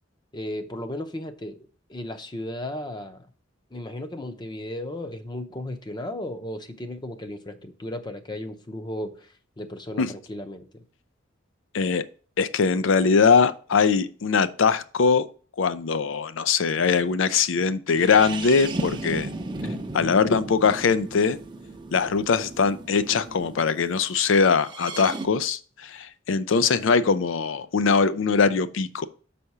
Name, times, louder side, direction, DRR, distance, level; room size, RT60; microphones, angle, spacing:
voice 1, 0.3-1.6 1.9-3.3 3.7-9.3 9.6-10.8, left 1 dB, 25° left, 0.7 m, -35 dB
voice 2, 12.4-15.2 15.6-19.3 19.9-21.4 21.9-29.1, left 5 dB, 80° left, 0.5 m, -21 dB
sound 1, 17.9-23.7 24.5-25.3, right 2 dB, 25° right, 0.6 m, -35 dB
6.6 x 4.2 x 4.7 m
head